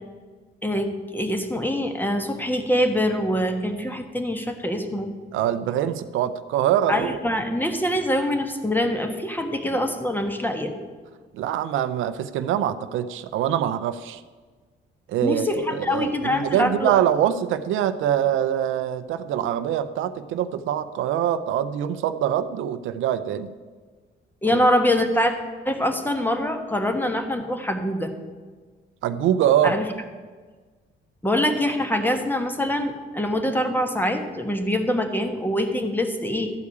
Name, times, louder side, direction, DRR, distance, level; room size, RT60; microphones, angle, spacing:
voice 1, 0.6-5.1 6.9-10.7 15.2-17.0 24.4-25.3 25.6-28.1 29.6-29.8 31.2-36.5, left 1 dB, 10° left, 6 dB, 1.4 m, -24 dB
voice 2, 5.3-7.2 11.3-14.2 15.1-23.5 24.5-24.6 29.0-29.8, right 10 dB, 85° right, 11 dB, 0.6 m, -24 dB
12.5 x 4.8 x 8.5 m, 1.4 s
cardioid pair, 90°, 20 cm